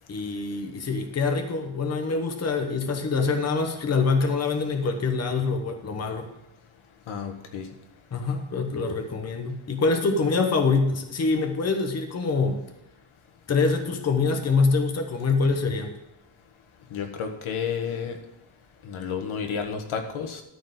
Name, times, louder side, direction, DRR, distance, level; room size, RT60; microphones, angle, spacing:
voice 1, 0.1-6.3 8.1-12.6 13.5-15.9, left 4 dB, 30° left, 4 dB, 1.1 m, -25 dB
voice 2, 7.1-7.6 16.9-18.1 18.8-20.4, left 6 dB, 90° left, 4 dB, 1.7 m, -31 dB
13.0 x 4.5 x 8.3 m, 0.92 s
wide cardioid pair, 170°, 47 cm